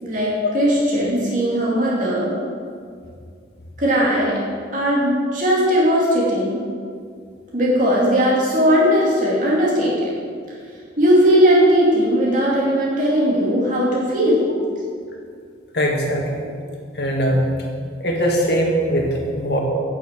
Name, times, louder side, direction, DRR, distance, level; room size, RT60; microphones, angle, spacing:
voice 1, 0.0-2.3 3.8-4.4 4.7-6.6 7.5-10.1 11.0-14.5, equal, 45° right, -6 dB, 2.7 m, -18 dB
voice 2, 15.7-16.5 16.9-17.5 18.0-19.6, equal, 60° left, -1 dB, 2.1 m, -21 dB
9.2 x 7.1 x 7.5 m, 2.2 s
head